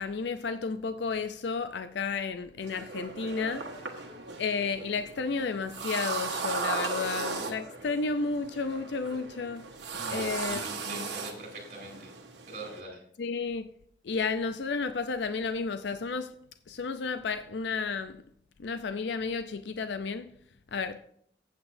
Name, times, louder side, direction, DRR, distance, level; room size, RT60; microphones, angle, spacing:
voice 1, 0.0-3.7 4.4-9.6 10.1-11.0 13.2-13.7 14.0-16.3 16.7-18.2 18.6-20.3 20.7-21.0, left 4 dB, 80° left, 0.5 m, -32 dB
sound 1, 2.6-12.8, right 4 dB, 80° right, 1.4 m, -37 dB
voice 2, 10.0-12.1 12.5-13.0, right 2 dB, 50° right, 3.7 m, -42 dB
15.0 x 8.1 x 2.6 m
head